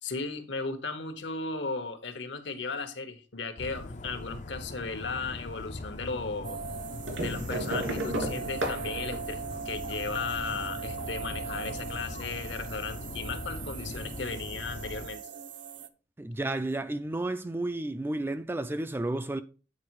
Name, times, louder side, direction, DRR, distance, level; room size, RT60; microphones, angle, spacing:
voice 1, 0.0-6.6 7.2-15.2, left 4 dB, 70° left, 1.2 m, -36 dB
Dog, 3.6-15.1, left 2 dB, 40° left, 0.5 m, -41 dB
sound 1, 6.4-15.9, right 6 dB, 70° right, 0.6 m, -40 dB
sound 2, 7.1-10.3 11.5-12.4 13.5-13.6 13.9-14.0, right 1 dB, 85° right, 2.8 m, -34 dB
voice 2, 16.2-19.4, right 2 dB, 10° right, 0.3 m, -32 dB
8.7 x 4.4 x 4.7 m
head